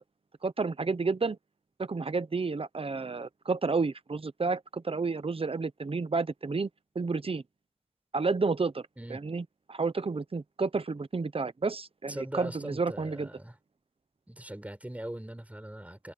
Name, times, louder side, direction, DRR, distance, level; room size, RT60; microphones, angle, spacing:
voice 1, 0.4-1.4 1.8-6.7 6.9-7.4 8.1-8.8 9.1-13.3, right 4 dB, 45° right, 0.9 m, -31 dB
voice 2, 12.1-13.6 14.3-16.1, right 1 dB, 10° right, 4.5 m, -40 dB
wide cardioid pair, 95°, 13 cm